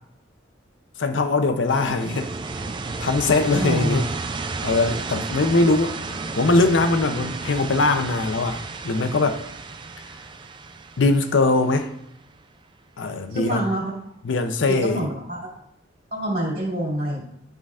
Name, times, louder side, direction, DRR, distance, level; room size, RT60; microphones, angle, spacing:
voice 1, 1.0-2.3 3.0-4.1 4.6-9.4 11.0-11.9 13.0-13.7 14.2-15.1, left 3 dB, 75° left, 0.6 m, -21 dB
sound 1, 1.7-12.4, right 3 dB, 25° right, 0.3 m, -33 dB
voice 2, 3.6-4.0 13.3-13.9 14.3-14.4 14.7-15.4 16.1-17.3, right 1 dB, 50° right, 2.5 m, -26 dB
11.0 x 3.8 x 2.4 m
head